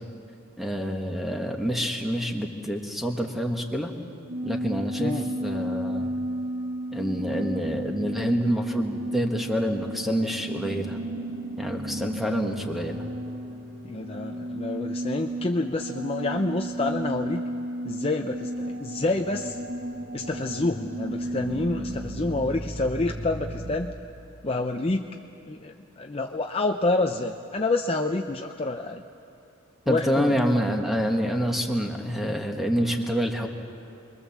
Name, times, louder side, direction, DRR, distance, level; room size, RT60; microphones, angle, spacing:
voice 1, 0.6-3.9 4.4-5.1 5.4-6.1 6.9-11.0 11.6-13.0 29.9-33.5, equal, ahead, 2 dB, 1.6 m, -27 dB
sound 1, 4.3-23.8, right 1 dB, 40° right, 2.0 m, -33 dB
voice 2, 13.8-17.4 17.8-19.6 20.1-23.9 24.4-25.1 25.4-29.0 29.9-30.4, left 2 dB, 25° left, 4 dB, 0.6 m, -28 dB
29.0 x 22.0 x 7.3 m, 2.6 s
head